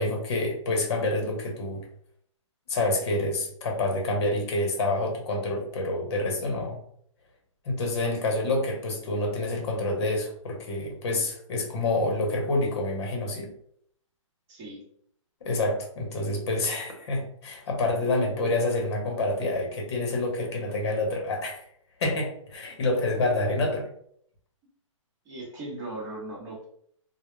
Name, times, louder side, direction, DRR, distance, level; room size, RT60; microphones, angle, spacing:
voice 1, 0.0-1.8 2.7-6.8 7.6-13.5 15.4-21.6 22.0-23.9, left 2 dB, 50° left, 1 dB, 0.8 m, -27 dB
voice 2, 14.5-14.8 25.2-26.6, right 2 dB, 15° right, -6 dB, 0.9 m, -38 dB
2.2 x 2.1 x 3.1 m, 0.66 s
hypercardioid pair, 160°, 17 cm